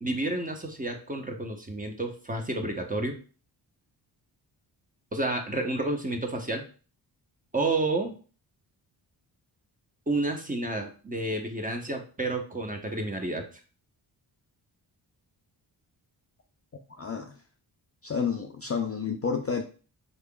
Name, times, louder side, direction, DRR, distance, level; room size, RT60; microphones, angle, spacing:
voice 1, 0.0-3.2 5.1-6.7 7.5-8.1 10.1-13.5, right 2 dB, 15° right, 3 dB, 0.9 m, -30 dB
voice 2, 16.9-17.4 18.0-19.6, left 6 dB, 30° left, 4 dB, 0.4 m, -30 dB
3.8 x 3.3 x 2.3 m, 0.38 s
supercardioid pair, 45°, 49 cm